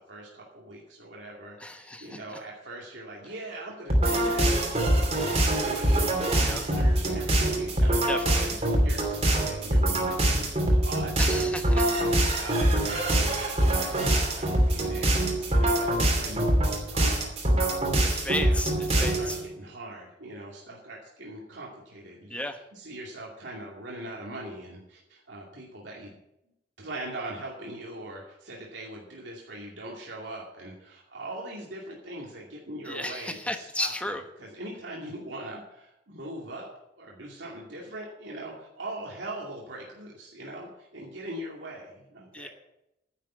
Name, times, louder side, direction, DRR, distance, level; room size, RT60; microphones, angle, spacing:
voice 1, 0.1-11.5 11.9-17.7 18.2-22.4 22.7-26.2 26.8-33.9 34.4-36.7 37.0-42.5, right 1 dB, 70° right, -3 dB, 2.5 m, -41 dB
voice 2, 1.6-2.4 6.4-6.6 8.1-8.6 11.2-11.8 18.1-19.4 22.3-22.6 32.8-34.2 42.3-42.5, left 1 dB, 5° left, 6 dB, 1.1 m, -34 dB
sound 1, 3.9-19.4, right 1 dB, 35° right, 2.9 m, -24 dB
10.5 x 7.4 x 9.3 m, 0.85 s
head